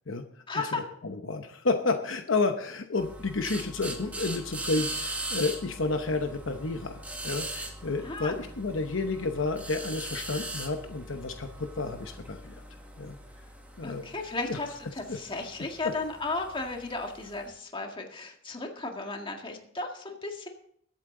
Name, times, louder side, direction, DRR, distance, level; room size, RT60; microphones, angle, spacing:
voice 1, 0.5-0.8 8.0-8.5 13.8-20.5, left 3 dB, 25° left, 3 dB, 1.8 m, -35 dB
voice 2, 1.0-12.6 13.0-13.2 13.8-14.0 14.4-14.6 15.1-15.2, left 3 dB, 70° left, 6 dB, 0.9 m, -31 dB
sound 1, 3.0-17.5, right 1 dB, 5° right, 1.6 m, -40 dB
21.0 x 8.5 x 3.8 m, 0.66 s
head